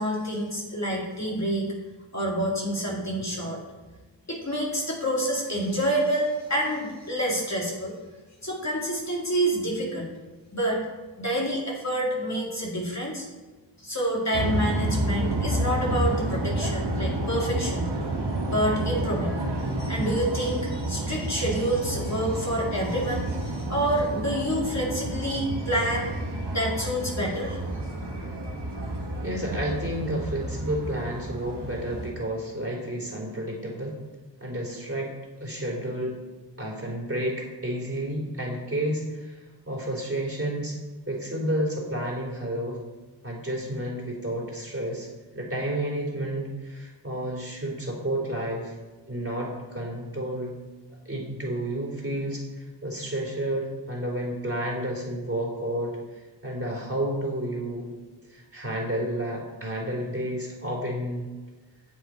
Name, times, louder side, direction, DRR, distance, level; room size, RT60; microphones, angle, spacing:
voice 1, 0.0-1.7 2.1-3.6 4.3-7.9 8.4-10.1 10.5-10.8 11.2-13.3 13.8-17.9 18.5-19.4 19.8-26.1 26.5-27.6, right 1 dB, 40° left, -3 dB, 2.4 m, -28 dB
sound 1, 14.3-32.1, right 1 dB, 70° right, 1.5 m, -30 dB
voice 2, 29.2-34.0 34.4-35.1 35.4-36.2 36.6-39.4 39.7-40.8 41.1-42.8 43.2-45.1 45.3-48.7 49.1-50.5 51.1-57.9 58.3-61.3, right 1 dB, 30° right, -3 dB, 3.4 m, -31 dB
9.1 x 7.6 x 4.4 m, 1.3 s
cardioid pair, 40°, 44 cm